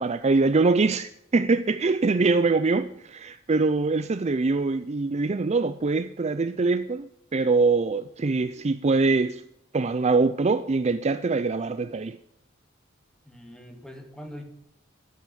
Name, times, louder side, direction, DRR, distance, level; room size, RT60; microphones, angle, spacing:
voice 1, 0.0-9.4 9.7-12.2, right 3 dB, 35° right, 0.5 m, -23 dB
voice 2, 13.3-14.4, equal, 5° left, 2.2 m, -42 dB
12.5 x 9.6 x 8.4 m
head